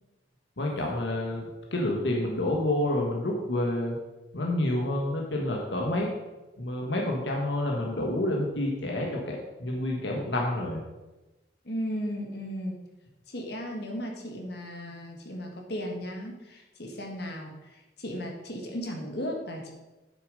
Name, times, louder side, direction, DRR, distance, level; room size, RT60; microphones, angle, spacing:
voice 1, 0.6-4.0 4.3-6.1 6.6-10.8, left 1 dB, 80° left, -1 dB, 1.5 m, -29 dB
voice 2, 11.6-12.8 13.3-17.6 18.0-19.7, equal, 60° left, 1 dB, 1.7 m, -35 dB
8.5 x 6.9 x 5.4 m, 1.1 s
head